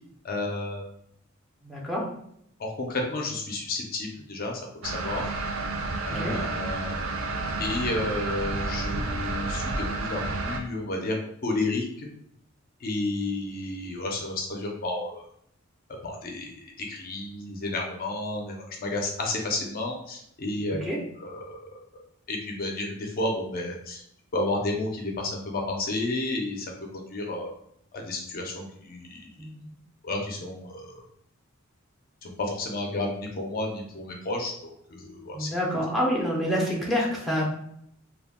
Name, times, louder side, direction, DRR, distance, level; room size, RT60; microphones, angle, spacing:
voice 1, 0.2-0.8 2.6-5.2 6.1-7.1 7.6-11.2 11.4-12.1 12.8-15.2 16.0-20.8 21.2-21.7 22.3-24.0 24.3-27.5 27.9-29.3 30.0-31.0 32.2-35.5, left 2 dB, 45° left, 0 dB, 0.5 m, -31 dB
voice 2, 1.6-2.0 6.0-6.3 20.8-21.0 29.4-29.6 35.3-37.5, equal, ahead, -4 dB, 0.5 m, -27 dB
sound 1, 4.8-10.6, right 3 dB, 80° right, 0.4 m, -30 dB
2.3 x 2.2 x 3.4 m, 0.71 s
head